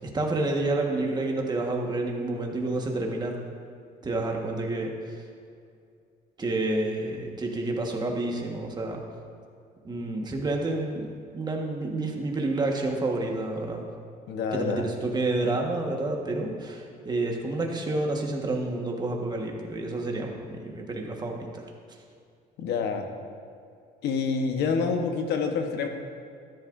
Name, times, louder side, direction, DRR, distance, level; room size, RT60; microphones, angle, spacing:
voice 1, 0.0-3.4 4.0-5.1 6.4-9.0 9.8-13.8 14.5-21.7, right 2 dB, 25° right, 1 dB, 1.5 m, -29 dB
voice 2, 14.3-14.9 22.6-23.1 24.0-25.9, left 5 dB, 80° left, 5 dB, 1.1 m, -27 dB
13.0 x 11.0 x 2.6 m, 2.4 s
cardioid pair, 110°, 17 cm